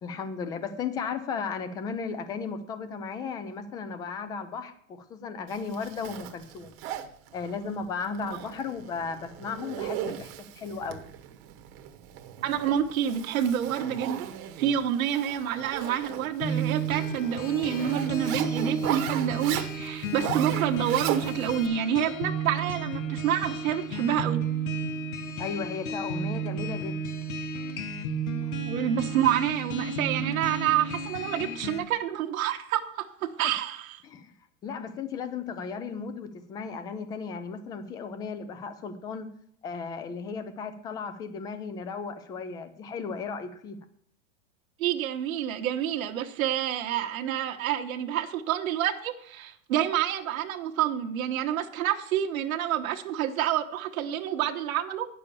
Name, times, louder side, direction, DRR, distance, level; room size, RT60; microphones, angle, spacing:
voice 1, 0.0-6.7 7.3-11.0 25.4-27.0 28.4-28.5 34.0-34.3 34.6-39.3 39.6-43.8, left 5 dB, 10° left, 11 dB, 0.3 m, -35 dB
Zipper (clothing), 5.5-21.7, right 11 dB, 35° right, 1.1 m, -38 dB
voice 2, 12.4-14.3 14.6-24.4 28.7-34.0 44.8-55.1, right 10 dB, 75° right, 3 dB, 1.2 m, -28 dB
sound 1, 16.4-31.8, right 3 dB, 85° left, 1.7 m, -32 dB
9.6 x 6.9 x 6.9 m, 0.65 s
supercardioid pair, 150°, 41 cm